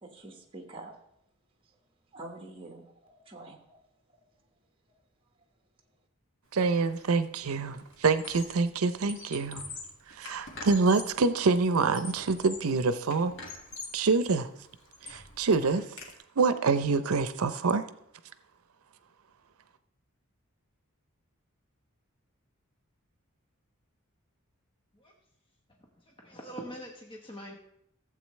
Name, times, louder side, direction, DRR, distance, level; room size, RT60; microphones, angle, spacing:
voice 1, 0.0-0.9 2.1-3.8 4.1-4.2, right 2 dB, 25° right, 3 dB, 1.4 m, -46 dB
voice 2, 6.5-9.6 10.2-13.3 13.9-14.5 15.0-15.8 16.4-17.9, right 4 dB, 85° right, 12 dB, 0.6 m, -26 dB
Squeak, 6.8-7.1 7.4-8.7 9.0-11.2 11.7-12.7 13.1-14.0 14.5-16.1, left 3 dB, 60° left, 1.9 m, -44 dB
voice 3, 26.0-27.5, equal, 25° left, 0 dB, 1.1 m, -43 dB
15.0 x 7.8 x 3.2 m, 0.77 s
head